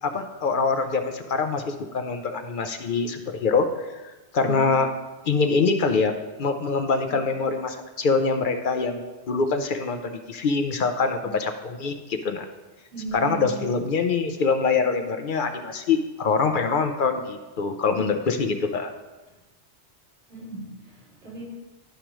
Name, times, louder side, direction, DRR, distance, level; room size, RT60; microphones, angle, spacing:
voice 1, 0.0-4.9 5.3-6.1 6.4-12.5 13.1-18.9, left 4 dB, 55° left, 6 dB, 0.7 m, -24 dB
voice 2, 4.4-4.7 7.1-7.3 11.2-11.4 12.9-13.6 20.3-21.4, right 2 dB, 60° right, -8 dB, 3.3 m, -36 dB
11.5 x 4.9 x 3.0 m, 1.1 s
omnidirectional pair, 1.2 m